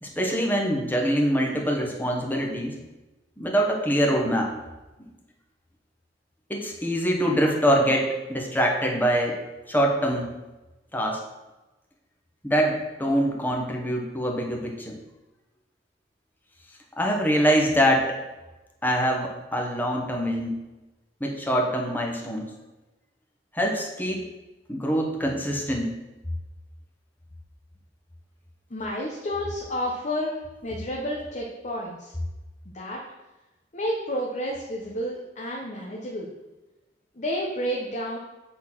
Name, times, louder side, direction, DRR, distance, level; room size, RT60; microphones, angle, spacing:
voice 1, 0.0-2.8 3.4-4.5 6.5-9.4 9.7-10.4 10.9-11.2 12.4-15.0 17.0-18.2 18.8-20.6 21.2-22.5 23.5-24.3 24.7-25.9, equal, 10° left, 0 dB, 1.3 m, -24 dB
voice 2, 28.7-32.1 32.6-33.0 33.7-36.3 37.1-38.2, equal, 40° left, -2 dB, 1.1 m, -30 dB
8.4 x 4.1 x 6.2 m, 1.1 s
head